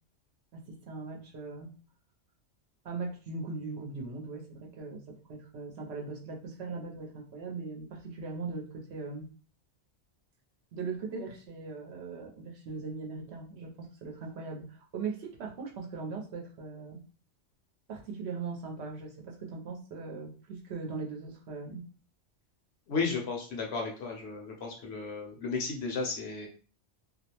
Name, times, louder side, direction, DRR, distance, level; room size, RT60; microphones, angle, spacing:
voice 1, 0.5-1.7 2.8-9.3 10.7-17.0 17.9-21.8, right 4 dB, 70° right, 0 dB, 0.8 m, -39 dB
voice 2, 22.9-26.5, left 4 dB, 65° left, 1 dB, 0.8 m, -34 dB
2.4 x 2.0 x 2.8 m, 0.37 s
omnidirectional pair, 1.2 m